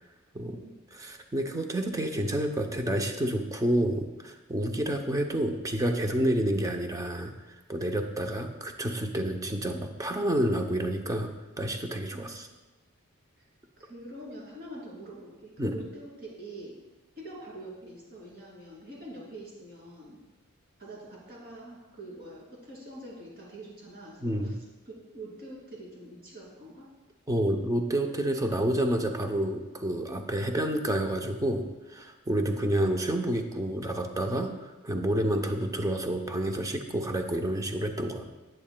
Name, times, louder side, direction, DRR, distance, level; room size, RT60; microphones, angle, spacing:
voice 1, 1.0-11.3 11.6-12.5 15.6-15.7 24.2-24.5 27.3-38.2, right 1 dB, 15° right, 4 dB, 0.6 m, -29 dB
voice 2, 13.8-16.7 17.2-20.2 20.8-24.6 24.8-26.9 32.5-32.7, right 1 dB, 45° right, -4 dB, 2.7 m, -45 dB
10.5 x 7.7 x 2.2 m, 1.1 s
head